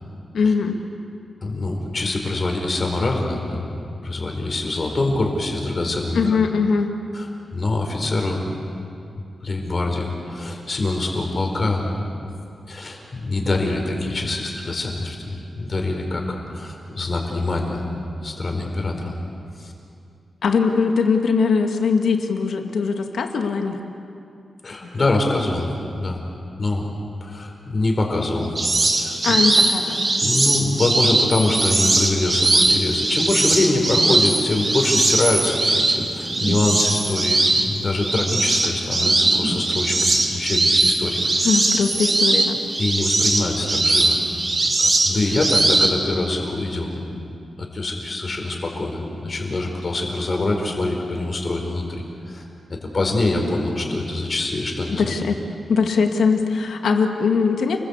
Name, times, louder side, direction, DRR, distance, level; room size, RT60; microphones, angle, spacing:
voice 1, 0.3-0.8 6.1-6.9 20.4-23.8 24.8-24.9 29.2-30.2 41.4-42.6 55.0-55.4 55.7-57.8, left 5 dB, 85° left, 4 dB, 2.3 m, -21 dB
voice 2, 1.4-6.4 7.1-8.4 9.4-12.0 12.7-17.8 18.2-19.1 19.6-19.7 24.6-25.7 26.0-26.2 26.6-26.9 27.2-28.5 29.0-29.4 30.2-41.6 42.8-44.2 44.6-47.0 47.6-55.1, left 2 dB, 40° left, 2 dB, 4.7 m, -24 dB
sound 1, 28.6-45.9, right 2 dB, 35° right, 2.8 m, -20 dB
29.5 x 21.0 x 8.4 m, 2.6 s
wide cardioid pair, 125°, 0 cm